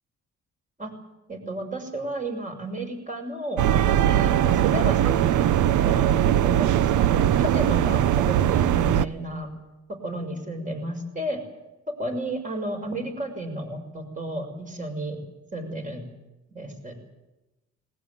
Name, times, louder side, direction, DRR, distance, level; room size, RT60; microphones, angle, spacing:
voice 1, 1.3-3.6 4.1-9.5 10.0-11.4 11.9-15.2 15.5-16.0 16.5-16.9, right 1 dB, 25° right, 4 dB, 6.5 m, -32 dB
sound 1, 3.6-9.0, right 11 dB, 75° right, 0.8 m, -20 dB
20.0 x 19.5 x 9.5 m, 1.0 s
cardioid pair, 90°, 30 cm